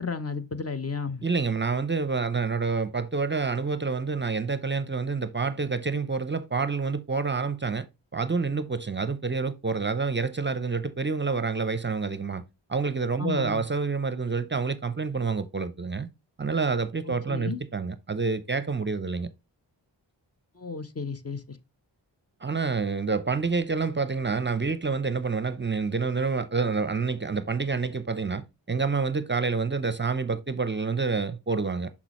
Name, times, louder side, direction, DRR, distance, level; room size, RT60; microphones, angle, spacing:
voice 1, 0.0-1.2 13.2-13.6 17.3-17.6 20.5-21.6, left 5 dB, 35° left, 0.8 m, -33 dB
voice 2, 1.2-7.9 8.1-12.4 12.7-16.1 16.4-19.3 22.4-31.9, right 4 dB, 25° right, 0.6 m, -28 dB
6.0 x 6.0 x 3.0 m
cardioid pair, 40°, 43 cm